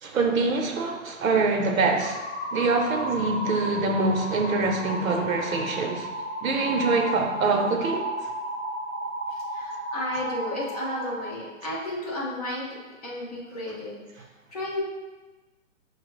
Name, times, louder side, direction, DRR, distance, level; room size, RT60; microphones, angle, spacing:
voice 1, 0.0-2.2 2.5-6.1 6.4-8.1, right 3 dB, 85° right, 3 dB, 0.8 m, -24 dB
sound 1, 2.0-11.3, right 1 dB, 5° left, 1.5 m, -33 dB
voice 2, 9.5-12.7 13.0-14.0 14.5-14.8, left 1 dB, 30° left, -6 dB, 0.8 m, -32 dB
5.0 x 2.3 x 3.1 m, 1.2 s
hypercardioid pair, 175°, 40 cm